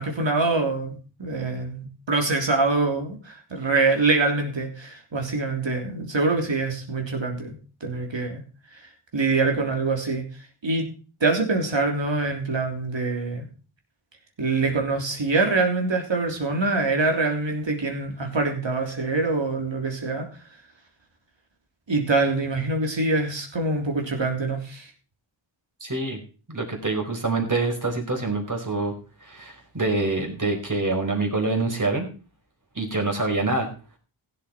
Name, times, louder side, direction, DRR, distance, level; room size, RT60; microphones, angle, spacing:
voice 1, 0.0-7.6 7.8-8.4 8.7-8.8 9.1-10.3 10.6-10.9 11.2-13.5 14.4-20.3 21.9-24.9, right 3 dB, 60° right, 2 dB, 3.5 m, -24 dB
voice 2, 25.8-26.2 26.5-28.9 29.2-32.1 32.7-33.7, right 3 dB, 40° right, 2 dB, 4.7 m, -26 dB
16.0 x 8.1 x 4.5 m, 0.36 s
cardioid pair, 55°, 49 cm